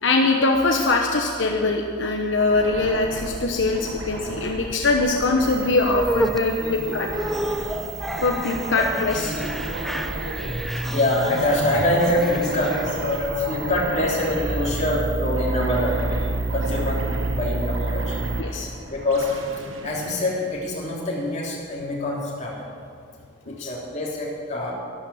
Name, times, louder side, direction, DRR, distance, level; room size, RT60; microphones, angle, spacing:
voice 1, 0.0-7.1 8.2-9.3 18.4-18.7 23.6-23.7, left 3 dB, 70° left, 2 dB, 1.0 m, -22 dB
sound 1, 0.5-18.4, right 3 dB, 40° right, 0.7 m, -32 dB
sound 2, 2.4-21.2, right 1 dB, 90° right, 1.5 m, -36 dB
sound 3, 5.8-13.2, equal, ahead, 0.4 m, -31 dB
voice 2, 6.6-7.8 8.6-8.9 9.1-18.1 18.9-19.3 19.8-22.7 23.4-24.7, left 1 dB, 35° left, -4 dB, 3.2 m, -26 dB
13.0 x 12.0 x 7.1 m, 2.3 s
head